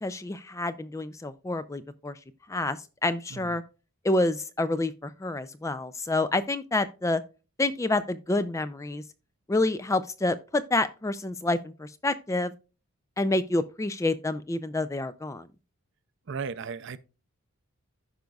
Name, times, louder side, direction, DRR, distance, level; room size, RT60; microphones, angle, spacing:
voice 1, 0.0-2.2 2.5-3.6 4.0-7.2 7.6-9.0 9.5-12.5 13.2-15.5, left 2 dB, 15° left, 0.3 m, -28 dB
voice 2, 16.3-17.0, right 5 dB, 55° right, 0.5 m, -35 dB
15.0 x 5.2 x 2.3 m
head